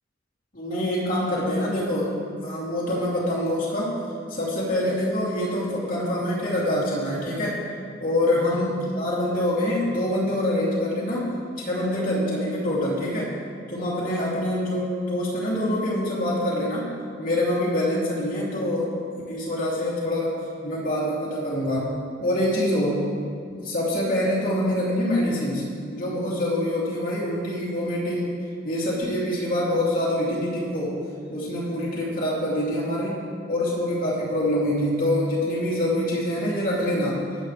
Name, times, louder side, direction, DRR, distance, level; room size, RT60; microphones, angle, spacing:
voice 1, 0.5-2.1 2.4-3.9 4.3-7.6 8.0-11.3 11.6-13.3 13.7-16.9 17.2-18.9 19.3-20.4 20.6-21.9 22.2-23.1 23.5-28.4 28.6-31.0 31.3-33.2 33.5-37.2, left 1 dB, 50° left, -6 dB, 2.9 m, -25 dB
24.0 x 8.3 x 3.4 m, 2.2 s
head